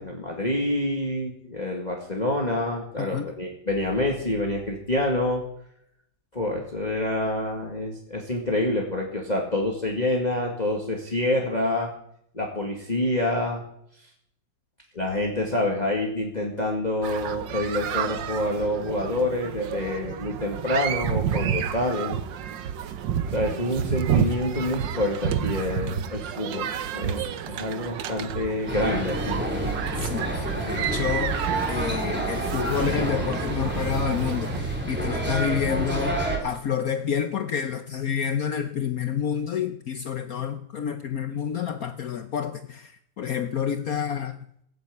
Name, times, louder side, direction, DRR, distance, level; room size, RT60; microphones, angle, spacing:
voice 1, 0.0-5.4 6.3-11.9 12.3-13.6 14.9-22.2 23.3-29.4, left 1 dB, 20° left, 0 dB, 2.1 m, -27 dB
voice 2, 3.0-3.3 30.0-44.4, left 8 dB, 60° left, 9 dB, 1.1 m, -29 dB
sound 1, 17.0-34.6, right 8 dB, 75° right, 1.6 m, -30 dB
sound 2, 28.7-36.4, right 1 dB, 5° right, 3.3 m, -28 dB
16.0 x 8.7 x 8.5 m, 0.70 s
omnidirectional pair, 2.0 m